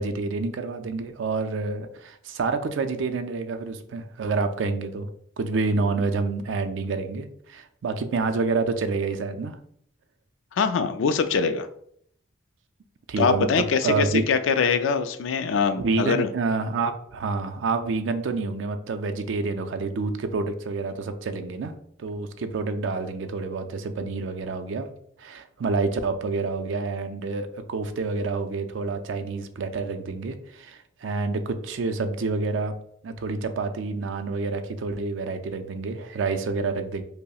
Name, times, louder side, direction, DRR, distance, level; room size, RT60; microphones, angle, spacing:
voice 1, 0.0-5.1 5.4-9.6 13.1-14.2 15.7-24.9 25.2-32.8 33.0-37.0, right 4 dB, 80° right, 8 dB, 0.4 m, -28 dB
voice 2, 10.6-11.7 13.2-16.3, left 5 dB, 85° left, 9 dB, 0.3 m, -23 dB
5.3 x 2.0 x 2.3 m, 0.66 s
head